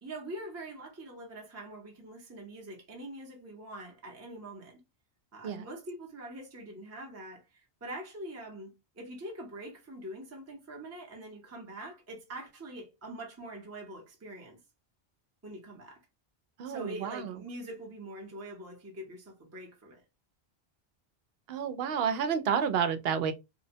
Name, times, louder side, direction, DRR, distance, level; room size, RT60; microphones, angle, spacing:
voice 1, 0.0-4.8 5.3-14.6 15.4-16.0 16.7-20.0, right 1 dB, 20° right, 0.6 m, -44 dB
voice 2, 16.6-17.3 21.5-23.3, right 7 dB, 70° right, 0.8 m, -30 dB
2.7 x 2.0 x 2.6 m
omnidirectional pair, 1.1 m